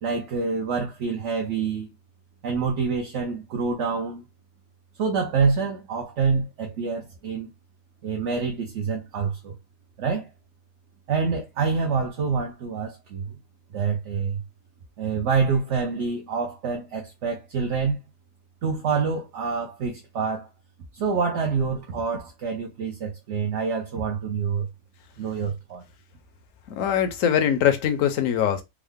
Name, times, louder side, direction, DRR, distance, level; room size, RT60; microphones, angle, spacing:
voice 1, 0.0-1.9 2.4-4.2 5.0-7.5 8.0-9.5 10.0-10.3 11.1-13.3 13.7-14.4 15.0-18.0 18.6-20.5 20.9-24.7 25.2-25.8, right 5 dB, 60° right, 0.9 m, -26 dB
voice 2, 26.7-28.6, left 9 dB, 65° left, 1.0 m, -22 dB
3.6 x 2.1 x 3.5 m
omnidirectional pair, 1.6 m